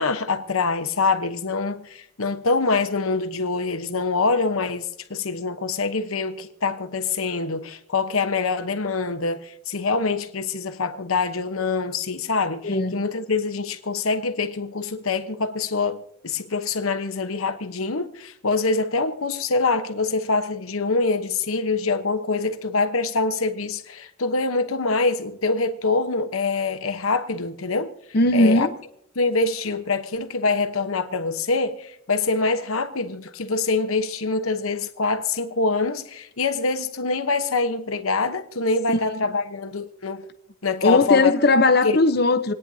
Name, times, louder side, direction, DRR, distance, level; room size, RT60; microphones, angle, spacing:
voice 1, 0.0-27.9 28.3-28.7 29.1-40.3 40.6-41.3 41.8-42.0, left 3 dB, 90° left, 1.1 m, -25 dB
voice 2, 28.1-28.7 38.9-39.0 40.8-42.5, left 2 dB, 50° left, 0.8 m, -18 dB
28.0 x 9.9 x 2.8 m
head